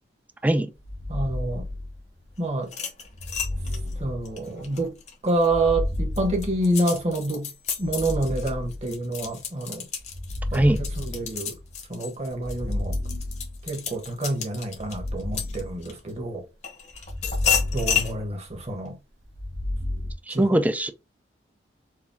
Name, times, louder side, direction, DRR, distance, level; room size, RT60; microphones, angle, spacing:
sound 1, 0.8-2.3 3.1-4.8 5.4-7.1 7.8-9.3 10.0-11.8 12.3-13.9 14.7-16.4 16.9-18.7 19.2-20.1, left 1 dB, 70° right, 1.2 m, -32 dB
voice 1, 1.1-1.7 2.4-2.7 4.0-4.9 5.2-7.5 7.8-9.9 10.5-11.5 11.9-13.0 13.7-16.4 17.7-19.0 20.3-20.6, right 1 dB, 35° right, 1.1 m, -27 dB
sound 2, 2.6-5.5 5.9-16.1 16.6-18.1, left 8 dB, 40° left, 1.0 m, -31 dB
voice 2, 20.3-20.9, right 1 dB, 10° right, 0.4 m, -21 dB
4.8 x 2.3 x 3.4 m
head